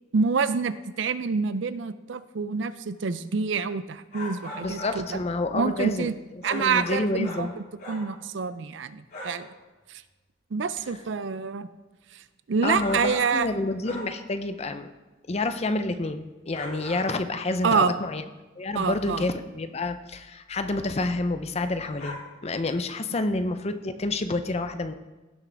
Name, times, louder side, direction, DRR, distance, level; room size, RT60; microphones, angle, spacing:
voice 1, 0.1-5.2 5.5-6.1 6.4-9.5 9.9-10.0 10.5-11.7 12.1-12.2 12.5-13.5 17.6-17.9 18.7-19.3, right 5 dB, 70° right, 14 dB, 0.5 m, -27 dB
sound 1, 4.1-5.1 6.4-8.1 9.1-9.5 12.8-13.5 13.8-14.3 16.5-17.2 22.0-22.1, left 1 dB, 50° left, 3.7 m, -39 dB
voice 2, 4.6-6.1 6.5-7.5 12.6-14.9 15.3-18.2 18.6-24.9, left 2 dB, 35° left, 9 dB, 0.6 m, -28 dB
16.5 x 6.1 x 3.4 m, 1.2 s
head